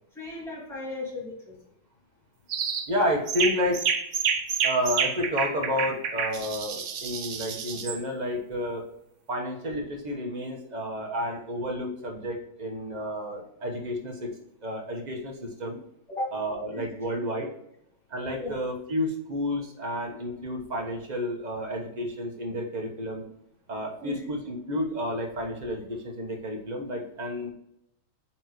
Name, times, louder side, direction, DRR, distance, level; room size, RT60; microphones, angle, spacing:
voice 1, 0.1-1.6 16.1-16.4 16.7-16.9 18.4-18.6 24.0-24.3, left 1 dB, ahead, -5 dB, 2.0 m, -36 dB
sound 1, 2.5-2.9 3.3-8.0, right 6 dB, 75° right, 0.6 m, -29 dB
voice 2, 2.9-3.8 4.6-8.9 9.3-14.3 14.6-15.8 16.3-17.5 18.1-23.3 23.7-27.5, equal, 25° right, 1 dB, 1.1 m, -31 dB
8.7 x 4.6 x 3.1 m, 0.78 s
omnidirectional pair, 2.2 m